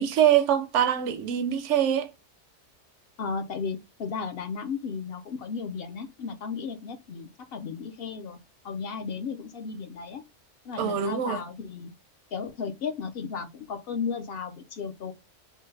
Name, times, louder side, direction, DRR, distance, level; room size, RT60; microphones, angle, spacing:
voice 1, 0.0-2.1 10.8-11.4, right 9 dB, 80° right, 0.9 m, -24 dB
voice 2, 3.2-8.4 8.6-10.2 10.6-11.9 12.3-15.1, left 5 dB, 60° left, 0.7 m, -34 dB
3.3 x 2.2 x 3.2 m
omnidirectional pair, 1.2 m